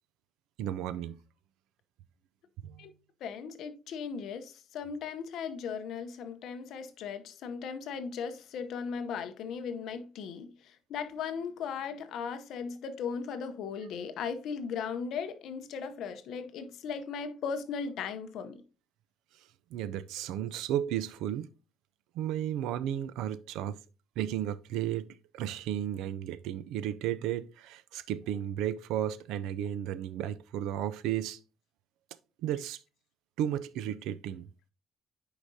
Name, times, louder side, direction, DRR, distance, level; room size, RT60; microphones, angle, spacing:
voice 1, 0.6-1.2 2.6-2.9 19.7-21.5 22.1-23.8 24.2-31.4 32.4-32.8 33.4-34.5, right 11 dB, 80° right, 0.4 m, -34 dB
voice 2, 3.2-18.6, left 6 dB, 55° left, 0.7 m, -37 dB
9.8 x 4.8 x 2.7 m
cardioid pair, 170°, 0 cm